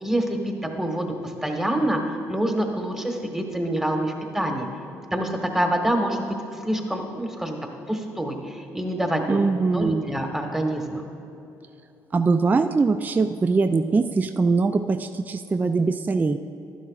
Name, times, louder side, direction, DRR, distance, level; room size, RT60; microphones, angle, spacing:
voice 1, 0.0-4.7 5.1-6.3 6.5-7.6 7.9-9.4 9.7-11.0, right 1 dB, 5° right, 3 dB, 1.3 m, -26 dB
voice 2, 9.3-10.1 12.1-16.4, right 4 dB, 25° right, 8 dB, 0.3 m, -22 dB
12.0 x 11.0 x 2.4 m, 2.8 s
cardioid pair, 85°, 7 cm